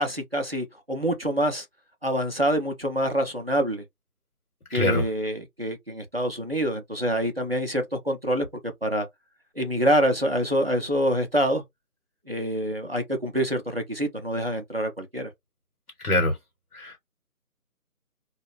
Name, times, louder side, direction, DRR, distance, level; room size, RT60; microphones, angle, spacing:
voice 1, 0.0-1.7 2.0-3.8 4.7-9.1 9.6-11.6 12.3-15.3, equal, 45° right, 0.5 m, -26 dB
voice 2, 4.7-5.0 16.0-16.3 16.7-17.0, left 1 dB, 75° left, 1.3 m, -24 dB
2.4 x 2.2 x 3.1 m
figure-of-eight pair, 180°, 45 cm